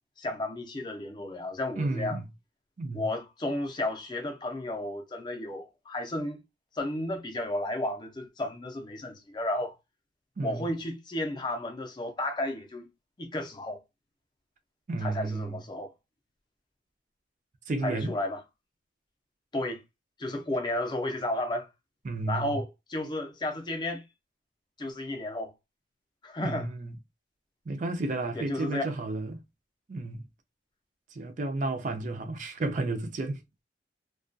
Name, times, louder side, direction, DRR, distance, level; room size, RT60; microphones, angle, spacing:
voice 1, 0.2-2.2 2.9-6.4 6.7-9.8 10.4-12.9 13.2-13.8 15.0-15.9 17.8-18.4 19.5-19.8 20.2-21.7 22.3-24.0 24.8-25.5 26.2-26.7 28.3-28.8, left 1 dB, 25° left, 0.5 m, -33 dB
voice 2, 1.8-2.3 2.8-3.0 10.4-10.7 14.9-15.6 17.7-18.1 22.0-22.6 26.4-26.9 27.7-29.4 29.9-30.2 31.1-33.4, right 2 dB, 40° right, 0.4 m, -32 dB
2.2 x 2.2 x 2.5 m
head